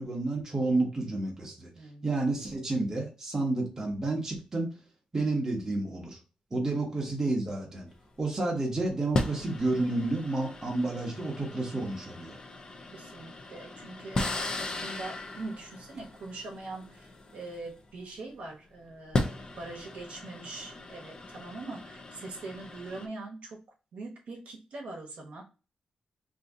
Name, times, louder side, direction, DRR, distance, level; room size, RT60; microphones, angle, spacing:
voice 1, 0.0-1.7 2.0-4.8 5.1-6.2 6.5-7.9 8.2-12.4, right 2 dB, 20° right, -1 dB, 0.8 m, -30 dB
voice 2, 1.7-2.2 6.6-6.9 12.9-23.6 23.9-25.4, right 3 dB, 70° right, -1 dB, 0.8 m, -43 dB
sound 1, 7.9-8.2 9.1-18.1 18.9-23.1, left 2 dB, 30° left, 0.5 m, -37 dB
2.7 x 2.6 x 3.5 m, 0.33 s
wide cardioid pair, 175°, 2 cm